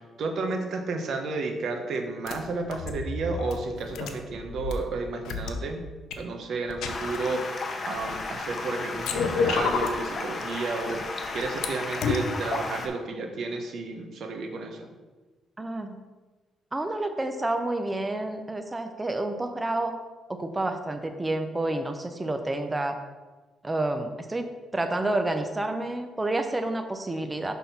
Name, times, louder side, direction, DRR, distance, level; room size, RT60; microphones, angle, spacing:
voice 1, 0.0-5.8 6.2-11.0 11.3-14.9, right 3 dB, 65° right, 4 dB, 1.0 m, -32 dB
sound 1, 2.3-2.4 2.7-4.7 5.2-5.5 6.1-6.2 6.7-7.2 7.9-8.5 8.9-10.0 10.7-11.6 12.0-12.2, left 5 dB, 80° left, 0.6 m, -30 dB
Stream, 6.8-12.9, left 3 dB, 40° left, 0.8 m, -34 dB
voice 2, 15.6-16.0 16.7-19.9 20.3-23.0 23.6-27.5, right 2 dB, 15° right, 6 dB, 0.6 m, -29 dB
6.0 x 3.6 x 5.8 m, 1.3 s
cardioid pair, 90°, 0 cm